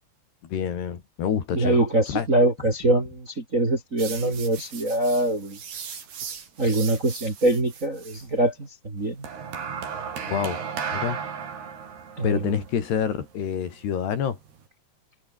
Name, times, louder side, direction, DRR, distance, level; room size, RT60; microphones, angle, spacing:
voice 1, 0.4-1.8 2.1-2.3 10.3-10.6 10.9-11.2 12.2-14.4, left 8 dB, 60° left, 5.0 m, -27 dB
voice 2, 1.5-5.6 6.6-9.3 12.2-12.5, right 1 dB, 20° right, 2.5 m, -23 dB
sound 1, 4.0-8.3 9.2-14.6, right 6 dB, 60° right, 6.2 m, -36 dB
omnidirectional pair, 5.4 m